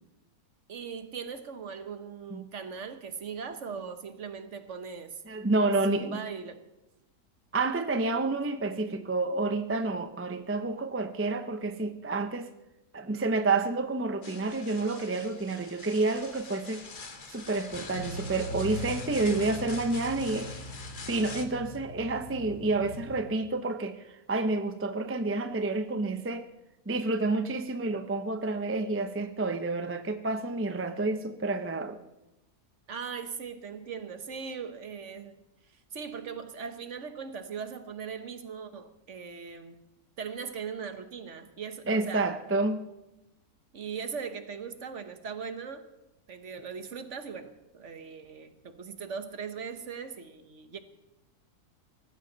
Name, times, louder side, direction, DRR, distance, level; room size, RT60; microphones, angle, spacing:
voice 1, 0.7-5.2 5.9-6.6 32.9-35.3 35.9-39.8 40.2-42.3 43.7-45.8 46.3-50.8, right 6 dB, 55° right, 10 dB, 1.3 m, -39 dB
voice 2, 5.3-6.2 7.5-12.5 12.9-16.8 17.3-20.5 21.1-26.5 26.9-32.0 41.9-42.8, right 3 dB, 15° right, 7 dB, 0.5 m, -29 dB
sound 1, 14.2-21.4, left 4 dB, 35° left, 1.2 m, -45 dB
sound 2, 17.9-23.2, equal, 90° left, 4.5 m, -41 dB
18.5 x 15.0 x 4.0 m, 0.96 s
omnidirectional pair, 1.6 m